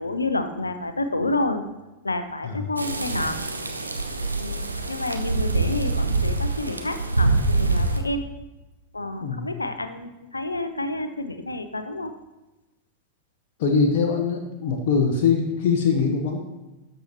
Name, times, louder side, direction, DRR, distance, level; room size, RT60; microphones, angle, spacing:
voice 1, 0.0-1.6 2.0-3.4 4.4-8.2 8.9-12.1, left 2 dB, 80° left, 9 dB, 0.6 m, -29 dB
sound 1, 2.8-8.0, right 3 dB, 85° right, 0.7 m, -25 dB
voice 2, 13.6-16.4, left 5 dB, 50° left, 2 dB, 1.0 m, -22 dB
11.5 x 6.7 x 3.0 m, 1.1 s
figure-of-eight pair, 90°, 0 cm